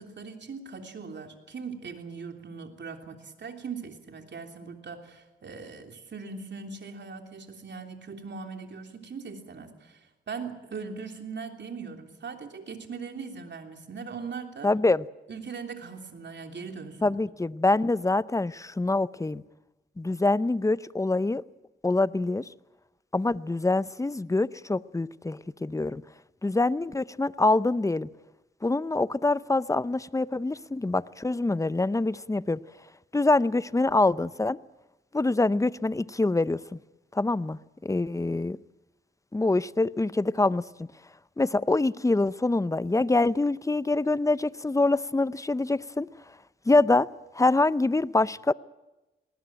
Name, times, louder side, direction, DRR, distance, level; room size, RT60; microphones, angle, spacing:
voice 1, 0.0-14.7 15.3-17.2, right 5 dB, 60° right, 3.3 m, -40 dB
voice 2, 14.6-15.0 17.0-19.4 20.0-21.4 21.8-22.5 23.1-26.0 26.4-28.1 28.6-32.6 33.1-34.6 35.1-36.8 37.1-38.6 39.3-40.9 41.4-46.1 46.7-47.1 47.3-48.5, left 2 dB, 15° left, 0.7 m, -25 dB
20.0 x 18.5 x 9.0 m
cardioid pair, 60°, 20 cm